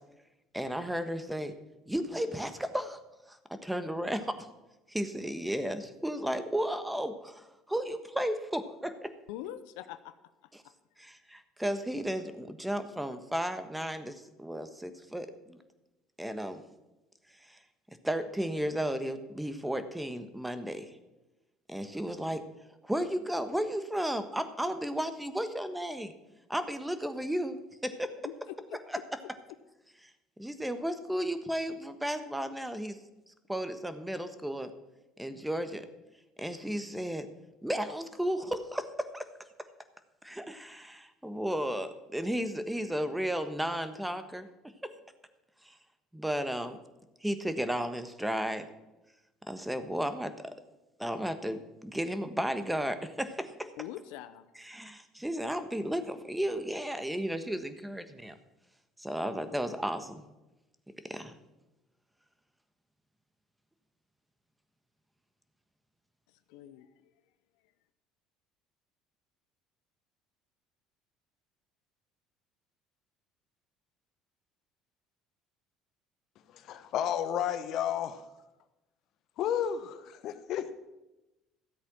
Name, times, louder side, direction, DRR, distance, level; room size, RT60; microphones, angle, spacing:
voice 1, 0.5-1.5 1.9-3.0 3.3-4.5 4.9-9.1 11.0-15.6 16.2-16.6 17.5-17.6 18.0-20.9 21.7-22.4 22.8-26.1 26.5-28.1 30.4-33.0 33.5-34.7 35.2-35.9 36.4-37.3 37.6-39.3 40.2-44.5 44.8-44.9 45.6-45.7 46.1-46.8 47.2-48.7 49.5-50.5 51.0-53.7 54.6-58.3 59.0-60.2 61.0-61.3, equal, 5° right, 10 dB, 1.3 m, -34 dB
voice 2, 9.3-10.2 10.6-10.7 28.2-29.0 53.8-54.5 66.5-66.9, left 12 dB, 80° left, 12 dB, 0.6 m, -43 dB
voice 3, 76.5-78.2 79.4-80.7, left 9 dB, 60° left, 11 dB, 1.0 m, -32 dB
13.5 x 8.2 x 6.2 m, 1.0 s
hypercardioid pair, 75°, 0 cm